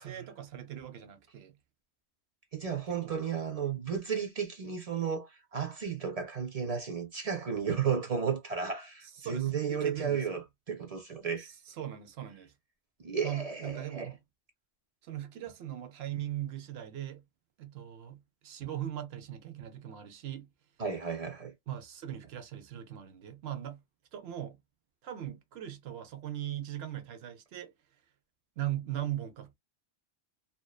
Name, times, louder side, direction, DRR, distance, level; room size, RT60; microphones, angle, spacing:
voice 1, 0.0-1.6 2.9-3.2 9.2-10.4 11.4-12.5 13.2-14.2 15.0-17.2 17.6-20.5 21.7-23.8 24.1-24.6 25.0-27.7 28.6-29.5, right 12 dB, 70° right, 0.8 m, -39 dB
voice 2, 2.5-11.5 13.0-14.1 20.8-21.5, right 7 dB, 45° right, 0.6 m, -33 dB
2.6 x 2.1 x 2.3 m
omnidirectional pair, 1.1 m